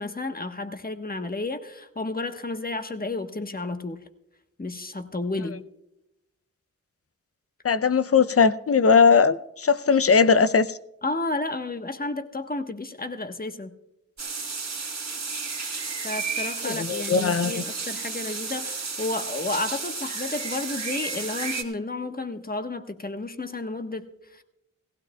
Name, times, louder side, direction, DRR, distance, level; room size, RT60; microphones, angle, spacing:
voice 1, 0.0-4.0 4.6-5.6 11.0-13.7 16.0-24.1 24.3-24.4, left 2 dB, 30° left, 1.3 m, -32 dB
voice 2, 7.6-10.7 16.6-17.5, left 5 dB, 45° left, 0.6 m, -19 dB
sound 1, 14.2-21.6, right 4 dB, 60° right, 1.9 m, -32 dB
18.0 x 16.0 x 2.3 m
cardioid pair, 45°, 32 cm